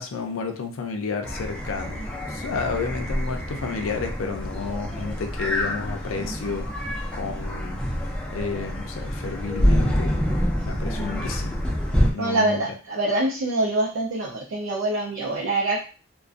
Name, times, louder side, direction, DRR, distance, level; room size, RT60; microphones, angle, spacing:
voice 1, 0.0-7.8 8.3-10.2 10.7-11.6 12.1-12.6, left 4 dB, 85° left, 5 dB, 0.4 m, -31 dB
sound 1, 1.2-12.1, equal, 5° left, 0.4 m, -27 dB
voice 2, 12.2-15.8, right 2 dB, 80° right, -3 dB, 0.5 m, -25 dB
2.5 x 2.1 x 2.4 m, 0.36 s
head